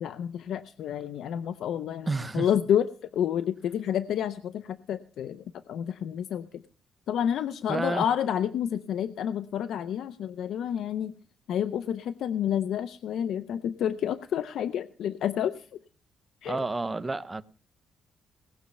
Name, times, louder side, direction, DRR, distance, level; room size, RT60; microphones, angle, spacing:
voice 1, 0.0-2.1 2.3-2.9 3.1-6.6 7.1-11.1 11.5-15.8 16.4-16.6, left 9 dB, 75° left, 0.6 m, -29 dB
voice 2, 2.1-2.5 7.7-8.1 16.5-17.4, right 3 dB, 20° right, 0.8 m, -30 dB
19.0 x 6.5 x 7.0 m
cardioid pair, 90°, 0 cm